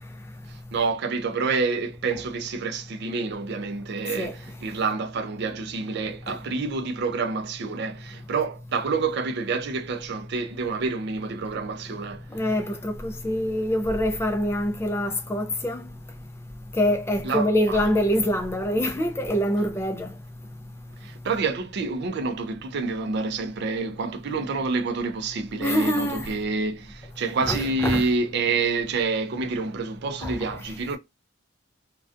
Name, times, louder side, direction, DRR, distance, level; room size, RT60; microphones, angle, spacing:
voice 1, 0.5-12.2 17.2-17.8 21.0-31.0, right 4 dB, 55° right, 0.4 m, -28 dB
voice 2, 12.3-15.8 16.8-20.1 25.6-26.3 27.5-28.0 30.2-30.3, left 1 dB, 15° left, 0.4 m, -25 dB
2.5 x 2.2 x 2.4 m
head